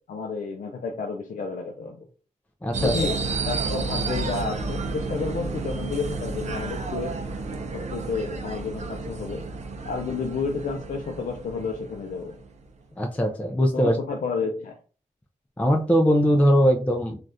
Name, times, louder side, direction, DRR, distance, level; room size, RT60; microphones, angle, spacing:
voice 1, 0.1-2.0 2.8-3.2 3.5-7.2 7.7-9.4 9.9-12.4 13.7-14.8, left 4 dB, 85° left, 1 dB, 0.5 m, -31 dB
voice 2, 2.6-2.9 13.0-14.0 15.6-17.2, equal, 10° left, 2 dB, 0.4 m, -20 dB
sound 1, 2.7-12.6, right 3 dB, 60° right, 0.5 m, -31 dB
3.4 x 2.4 x 2.6 m, 0.37 s
wide cardioid pair, 105°, 14 cm